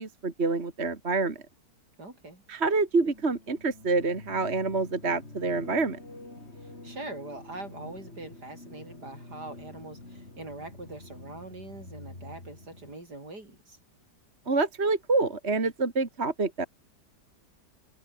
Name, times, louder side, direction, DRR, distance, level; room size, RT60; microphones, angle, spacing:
voice 1, 0.0-1.4 2.5-6.0 14.5-16.7, right 3 dB, 40° right, 2.6 m, -27 dB
voice 2, 2.0-2.4 6.6-13.8, right 2 dB, 70° right, 7.3 m, -43 dB
sound 1, 3.0-12.9, left 2 dB, 35° left, 5.5 m, -47 dB
omnidirectional pair, 1.8 m